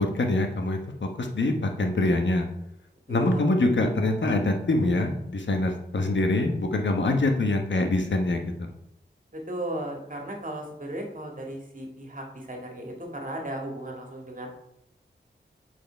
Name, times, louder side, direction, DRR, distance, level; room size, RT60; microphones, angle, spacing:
voice 1, 0.0-2.5 3.1-8.7, left 2 dB, 70° left, 4 dB, 1.2 m, -25 dB
voice 2, 3.1-3.5 9.3-14.5, right 1 dB, 45° right, 1 dB, 2.1 m, -36 dB
7.6 x 4.8 x 4.6 m, 0.80 s
cardioid pair, 50°, 20 cm